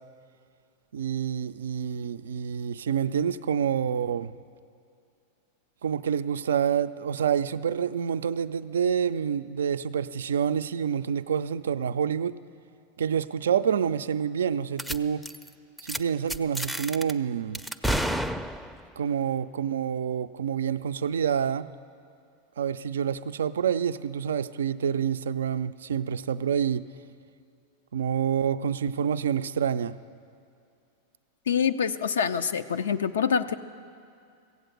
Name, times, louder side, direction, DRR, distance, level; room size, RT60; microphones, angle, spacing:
voice 1, 0.9-4.3 5.8-12.3 13.0-15.3 15.9-17.6 19.0-21.7 22.6-26.8 27.9-30.0, right 8 dB, 80° right, 13 dB, 0.4 m, -27 dB
sound 1, 14.8-15.0 15.2-15.5 15.8-16.0 16.3-17.1 17.5-18.9, equal, ahead, 0.5 m, -30 dB
voice 2, 31.5-33.6, left 7 dB, 80° left, 9 dB, 0.4 m, -25 dB
15.5 x 8.2 x 7.9 m, 2.4 s
hypercardioid pair, 95°, 0 cm